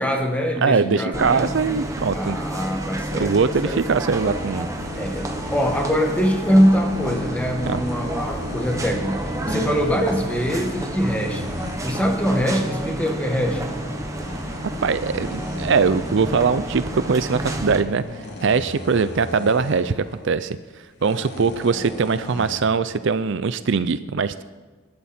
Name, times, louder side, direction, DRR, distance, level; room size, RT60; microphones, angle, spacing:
voice 1, 0.0-1.5 2.1-3.8 4.9-11.6 11.8-13.7, equal, 5° left, 3 dB, 1.6 m, -23 dB
voice 2, 0.6-2.4 3.1-4.7 7.7-7.8 14.8-20.6 21.0-24.4, right 5 dB, 60° right, 13 dB, 0.5 m, -21 dB
sound 1, 1.1-17.8, right 1 dB, 15° right, 1.3 m, -30 dB
sound 2, 4.1-22.6, left 1 dB, 55° left, 3.0 m, -36 dB
23.5 x 12.0 x 4.4 m, 1.3 s
head